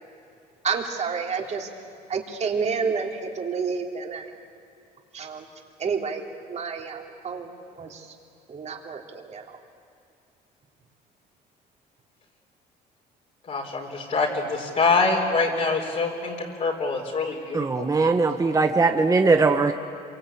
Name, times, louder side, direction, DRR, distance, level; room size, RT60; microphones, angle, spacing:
voice 1, 0.6-1.7 2.1-4.3 5.1-5.5 5.8-6.2 6.5-7.5 7.8-8.1 8.5-9.6, right 5 dB, 40° right, 2 dB, 3.4 m, -29 dB
voice 2, 13.5-17.9, left 4 dB, 45° left, -2 dB, 4.4 m, -25 dB
voice 3, 17.5-19.7, right 3 dB, 20° right, 5 dB, 1.3 m, -20 dB
27.0 x 24.0 x 8.6 m, 2.4 s
cardioid pair, 110°, 17 cm